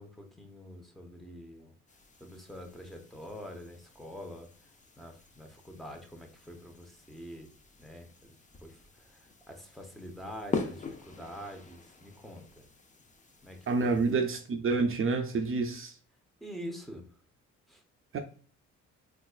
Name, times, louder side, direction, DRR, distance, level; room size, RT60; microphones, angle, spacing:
voice 1, 0.0-1.7 2.2-4.5 5.0-7.5 7.8-8.3 8.6-12.6 13.4-14.0 16.4-17.0 17.7-17.8, equal, ahead, 0.9 m, -46 dB
sound 1, 1.9-14.2, left 4 dB, 25° left, 0.6 m, -44 dB
voice 2, 13.7-15.9 18.1-18.2, right 4 dB, 45° right, 0.5 m, -28 dB
4.1 x 2.5 x 2.3 m
cardioid pair, 90°, 30 cm